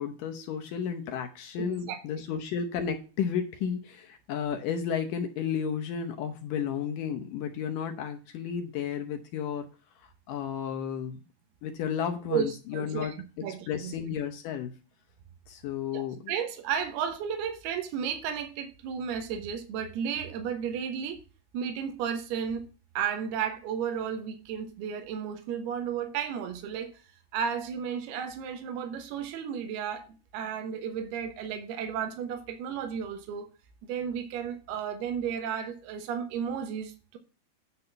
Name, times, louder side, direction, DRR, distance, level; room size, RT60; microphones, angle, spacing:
voice 1, 0.0-9.7 10.0-11.2 11.6-14.7 15.5-16.3, left 7 dB, 75° left, 5 dB, 2.1 m, -33 dB
voice 2, 1.6-2.0 12.3-13.1 13.4-13.9 15.9-21.2 21.5-22.6 23.0-26.9 27.3-30.1 30.3-33.5 33.9-37.2, right 8 dB, 80° right, 6 dB, 3.0 m, -33 dB
9.8 x 4.1 x 6.8 m, 0.34 s
omnidirectional pair, 4.5 m